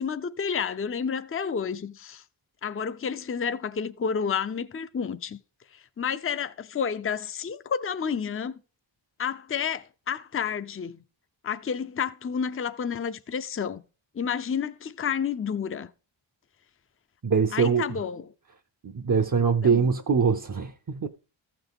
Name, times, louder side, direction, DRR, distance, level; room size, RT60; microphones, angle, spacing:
voice 1, 0.0-2.2 2.6-5.4 5.7-8.6 9.2-11.0 11.4-13.8 14.1-15.9 17.5-18.3 19.6-19.8, left 7 dB, 30° left, 0.4 m, -30 dB
voice 2, 17.2-17.9 18.8-21.1, right 5 dB, 40° right, 0.6 m, -23 dB
14.5 x 5.9 x 3.5 m
wide cardioid pair, 45°, 48 cm